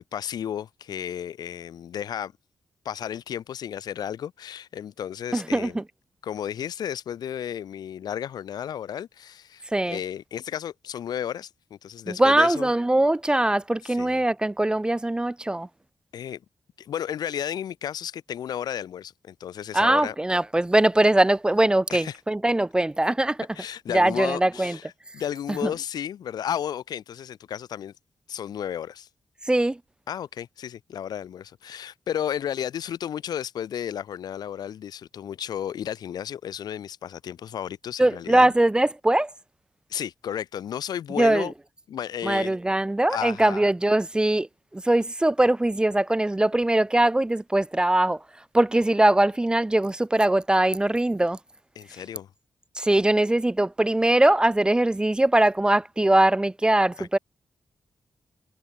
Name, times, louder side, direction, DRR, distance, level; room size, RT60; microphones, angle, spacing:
voice 1, 0.0-2.3 2.8-5.8 6.2-12.7 13.8-14.2 16.1-16.4 16.8-20.2 21.9-22.2 23.5-27.9 28.3-29.1 30.1-38.5 39.9-41.5 41.9-42.6 43.1-43.6 51.8-52.3 57.0-57.2, left 9 dB, 80° left, 0.5 m, -33 dB
voice 2, 5.3-5.8 9.7-10.0 12.1-15.7 19.7-23.4 23.9-24.8 25.6-25.7 29.5-29.8 38.0-39.3 41.2-41.5 42.2-44.5 44.7-48.2 48.5-51.4 52.8-57.2, right 1 dB, 10° right, 0.4 m, -21 dB
cardioid pair, 85°, 7 cm